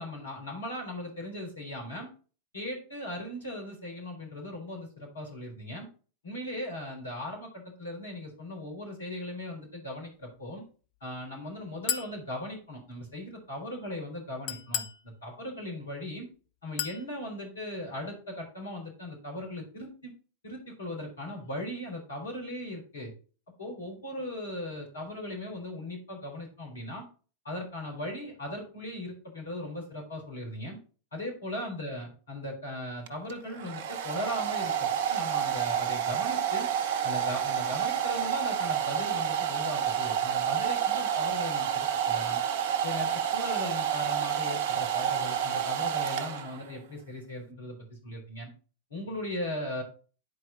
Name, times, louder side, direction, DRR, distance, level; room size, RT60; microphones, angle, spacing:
voice 1, 0.0-2.1 2.5-5.9 6.2-10.6 11.0-16.3 16.6-20.1 20.4-23.1 23.6-27.1 27.4-30.8 31.1-36.7 37.0-42.4 42.8-48.5 48.9-49.8, left 1 dB, 70° left, 1 dB, 4.1 m, -38 dB
Chink clink, 11.9-12.2 14.5-15.0 16.8-17.1, left 9 dB, 40° left, 0.9 m, -32 dB
Domestic sounds home sounds, 33.1-46.8, right 9 dB, 50° right, 0.8 m, -29 dB
11.0 x 4.7 x 4.0 m, 0.37 s
figure-of-eight pair, 90°, 0 cm